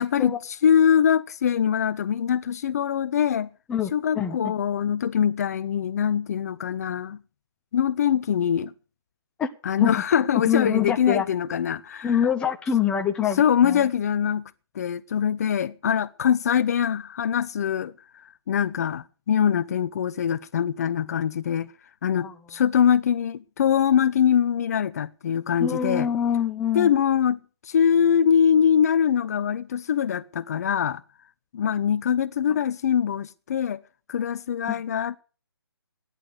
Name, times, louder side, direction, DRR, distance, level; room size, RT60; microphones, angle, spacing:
voice 1, 0.0-3.5 3.9-7.2 7.7-8.7 9.6-12.2 13.4-14.4 14.7-21.7 22.0-26.1 26.7-31.0 31.5-33.8 34.1-35.2, left 8 dB, 40° left, 0.7 m, -23 dB
voice 2, 3.7-4.5 9.4-9.5 9.8-9.9 10.5-11.3 12.0-13.9 22.2-22.3 25.6-26.9 34.7-34.8, left 8 dB, 5° left, 0.8 m, -25 dB
16.5 x 11.0 x 6.6 m
hypercardioid pair, 155°, 13 cm